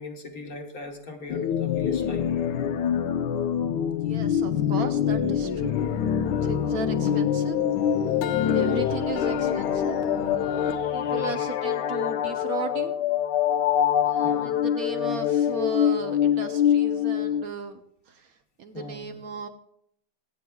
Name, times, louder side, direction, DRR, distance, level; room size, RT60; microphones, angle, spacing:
voice 1, 0.0-2.3 6.7-6.9 11.0-11.3 14.2-14.6 18.7-19.1, left 2 dB, 50° left, 3 dB, 1.5 m, -39 dB
sound 1, 1.3-17.4, left 9 dB, 65° left, 1.2 m, -25 dB
voice 2, 3.9-5.8 6.4-7.6 8.5-10.0 10.9-13.0 14.0-19.5, right 5 dB, 65° right, 8 dB, 0.9 m, -36 dB
sound 2, 5.7-10.8, left 6 dB, 85° left, 1.6 m, -30 dB
25.5 x 9.2 x 2.3 m, 0.72 s
omnidirectional pair, 2.3 m